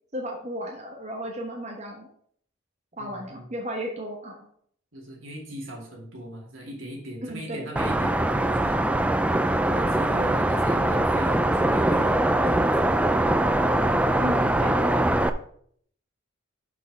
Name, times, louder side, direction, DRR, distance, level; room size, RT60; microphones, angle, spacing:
voice 1, 0.1-2.1 3.0-4.5 7.2-7.7 14.2-15.1, equal, 35° right, 0 dB, 1.1 m, -34 dB
voice 2, 3.0-3.5 4.9-8.9 9.7-12.7, right 1 dB, 75° right, 0 dB, 2.4 m, -39 dB
sound 1, 7.8-15.3, right 1 dB, 5° right, 0.3 m, -22 dB
6.2 x 5.6 x 5.9 m, 0.63 s
head